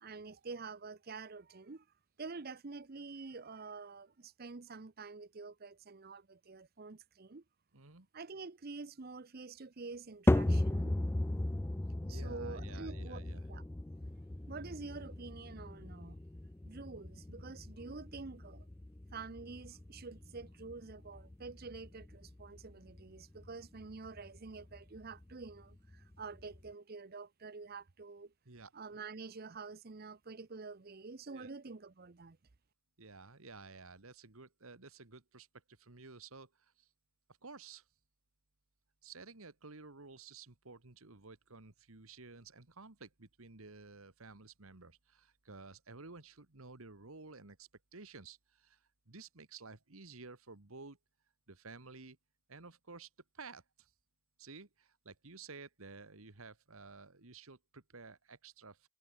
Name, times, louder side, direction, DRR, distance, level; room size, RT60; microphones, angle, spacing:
voice 1, 0.0-1.9 2.2-7.4 8.1-11.0 12.0-13.6 14.5-16.2 16.6-18.7 19.1-28.3 28.7-32.4, right 4 dB, 45° right, 0.7 m, -48 dB
voice 2, 7.7-8.1 12.1-13.5 28.5-28.7 31.3-31.5 33.0-36.9 37.4-37.9 39.0-51.0 51.5-52.2 52.5-53.1 53.3-53.9 54.4-58.9, right 4 dB, 75° right, 1.8 m, -53 dB
sound 1, 10.3-26.7, left 1 dB, 10° left, 0.3 m, -37 dB
head